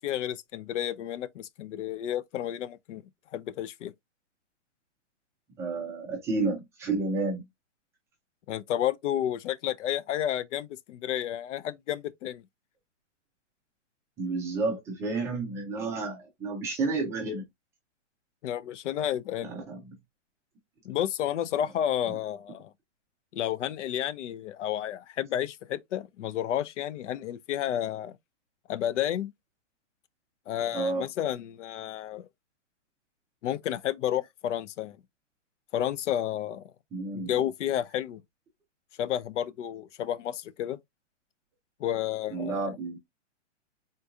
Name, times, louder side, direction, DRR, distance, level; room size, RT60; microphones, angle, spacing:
voice 1, 0.0-3.0 3.3-3.9 8.5-12.4 18.4-19.5 20.8-22.7 23.3-28.2 28.7-29.3 30.5-32.3 33.4-35.0 35.7-36.6 37.1-38.2 39.0-40.8 41.8-42.6, left 11 dB, 75° left, 0.5 m, -31 dB
voice 2, 5.6-7.4 14.2-17.4 19.4-19.8 30.7-31.1 36.9-37.3 42.3-43.0, right 3 dB, 10° right, 0.4 m, -31 dB
3.7 x 2.7 x 2.3 m
hypercardioid pair, 145°, 37 cm